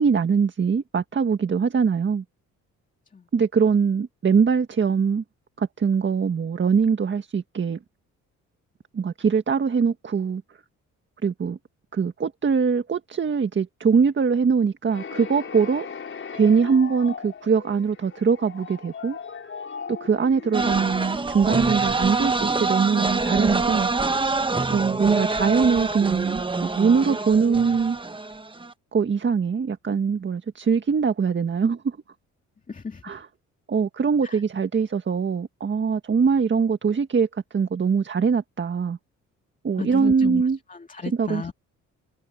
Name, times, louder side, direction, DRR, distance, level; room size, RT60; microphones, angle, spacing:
voice 1, 0.0-2.2 3.3-5.2 5.6-7.8 8.9-10.4 11.2-11.6 11.9-15.9 16.3-19.2 19.9-23.9 24.7-28.0 28.9-32.0 33.0-33.3 33.7-39.0 39.6-40.6 41.0-41.5, right 6 dB, 40° right, 1.8 m, -22 dB
sound 1, 14.9-23.7, left 6 dB, 45° left, 5.7 m, -39 dB
sound 2, 20.5-28.7, right 3 dB, 15° right, 1.2 m, -25 dB
voice 2, 32.7-33.0 34.2-34.4 39.8-40.4 40.7-41.5, left 5 dB, 25° left, 2.3 m, -32 dB
cardioid pair, 90°, 30 cm